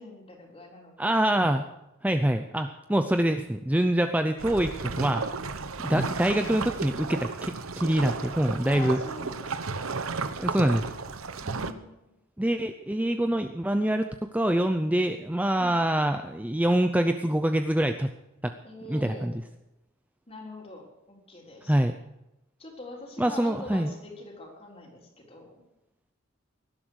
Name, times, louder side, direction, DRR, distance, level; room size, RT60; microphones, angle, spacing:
voice 1, 0.0-1.1 5.9-6.1 8.6-9.8 11.4-12.2 15.6-15.8 18.6-19.3 20.3-21.8 22.6-25.6, left 2 dB, 30° left, 0 dB, 3.8 m, -44 dB
voice 2, 1.0-1.6 2.0-5.2 5.8-9.0 10.4-10.9 12.4-14.1 14.3-18.1 18.4-18.5 18.9-19.3 21.7-21.9 23.2-23.9, right 1 dB, 5° right, 7 dB, 0.6 m, -25 dB
sound 1, 4.4-11.7, right 4 dB, 90° right, 1.0 m, -33 dB
18.0 x 12.0 x 6.4 m, 0.93 s
head